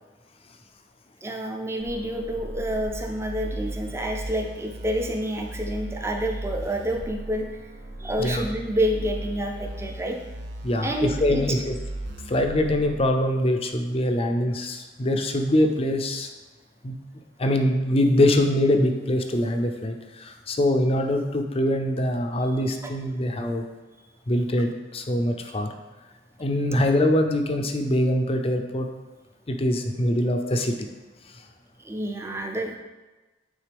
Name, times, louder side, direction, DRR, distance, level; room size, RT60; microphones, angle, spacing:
voice 1, 1.2-7.5 8.0-10.2 10.8-11.4 31.8-32.8, equal, 15° right, 2 dB, 0.5 m, -28 dB
sound 1, 1.8-13.2, right 1 dB, 70° right, 0.7 m, -36 dB
voice 2, 10.6-11.7 12.3-16.3 16.8-17.0 17.4-23.6 24.3-25.7 26.4-28.9 29.5-30.7, left 1 dB, 30° left, 5 dB, 0.5 m, -23 dB
8.8 x 3.7 x 3.4 m, 1.2 s
head